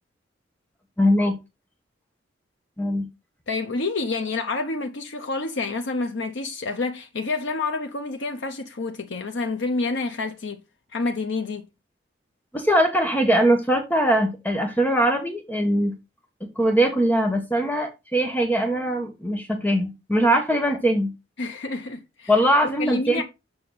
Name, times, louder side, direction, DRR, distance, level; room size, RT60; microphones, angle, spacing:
voice 1, 1.0-1.4 2.8-3.1 12.5-15.9 16.6-21.1 22.3-23.2, right 1 dB, 10° left, 1.1 m, -21 dB
voice 2, 3.5-10.6 10.9-11.6 21.4-22.3 22.8-23.2, left 3 dB, 85° left, 0.8 m, -28 dB
7.1 x 5.7 x 3.9 m
head